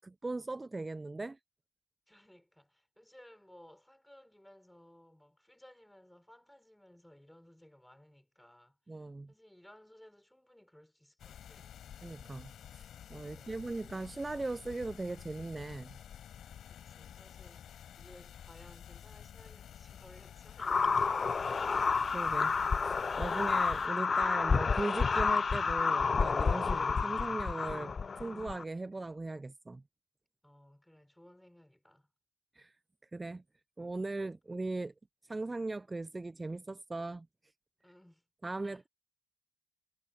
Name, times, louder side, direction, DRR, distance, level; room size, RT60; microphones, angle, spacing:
voice 1, 0.0-1.4 8.9-9.3 12.0-16.0 21.7-22.5 22.8-29.8 32.5-32.7 33.1-33.4 33.8-34.9 35.2-37.3 38.4-38.9, right 2 dB, 15° right, 0.4 m, -39 dB
voice 2, 2.1-8.8 9.3-11.8 13.3-13.7 16.7-21.5 30.4-32.1 37.8-38.2 38.6-38.9, left 1 dB, 5° left, 5.6 m, -59 dB
sound 1, 11.2-23.9, left 9 dB, 60° left, 7.8 m, -51 dB
sound 2, 20.6-28.6, left 5 dB, 35° left, 0.5 m, -30 dB
cardioid pair, 95°, 0 cm